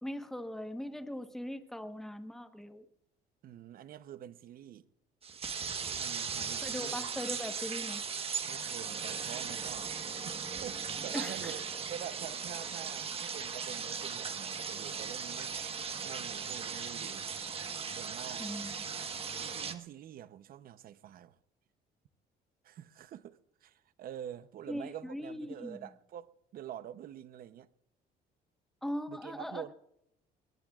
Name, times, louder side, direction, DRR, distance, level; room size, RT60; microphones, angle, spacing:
voice 1, 0.0-2.8 6.6-8.0 11.1-11.6 18.4-18.7 24.7-25.9 28.8-29.6, equal, ahead, 1.2 m, -40 dB
voice 2, 3.4-4.8 5.9-7.1 8.4-9.9 10.2-15.6 16.0-17.3 17.9-18.5 19.4-21.4 22.6-27.7 29.1-29.7, right 10 dB, 60° right, 0.8 m, -46 dB
sound 1, 5.2-19.7, right 6 dB, 35° right, 1.3 m, -38 dB
21.0 x 20.5 x 2.4 m
cardioid pair, 110°, 17 cm